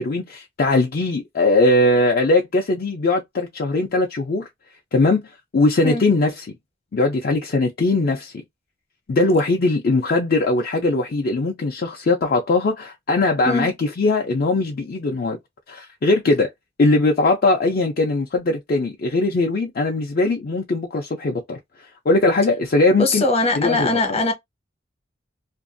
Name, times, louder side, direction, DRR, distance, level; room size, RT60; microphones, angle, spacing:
voice 1, 0.0-4.5 4.9-6.5 6.9-8.3 9.1-15.4 15.7-16.5 16.8-21.6 22.1-23.2 23.6-24.0, left 2 dB, 50° left, 0.5 m, -20 dB
voice 2, 23.0-24.3, left 2 dB, 35° left, 0.9 m, -21 dB
2.6 x 2.3 x 2.5 m
head